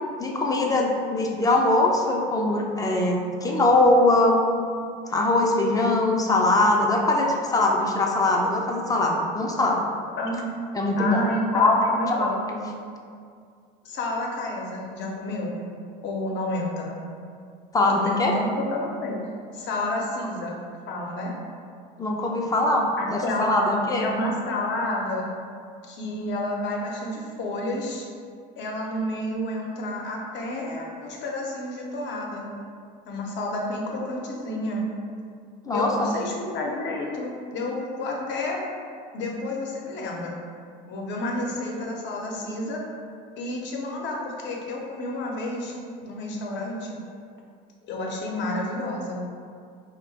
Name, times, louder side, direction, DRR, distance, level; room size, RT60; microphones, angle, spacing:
voice 1, 0.2-4.4 5.1-9.8 10.7-11.3 11.5-11.8 12.1-12.3 17.7-18.3 22.0-24.1 35.7-36.1, left 2 dB, 15° left, 0 dB, 0.5 m, -22 dB
voice 2, 10.2-10.5 11.0-12.7 13.8-15.6 16.0-17.0 17.9-19.2 19.5-20.6 20.9-21.3 23.0-23.6 24.0-25.3 25.9-28.1 28.6-32.5 33.1-34.9 35.7-38.6 39.1-40.3 40.9-42.8 43.4-47.0 47.8-49.2, left 1 dB, 60° left, -1 dB, 0.7 m, -30 dB
2.7 x 2.2 x 4.0 m, 2.2 s
supercardioid pair, 85°, 21 cm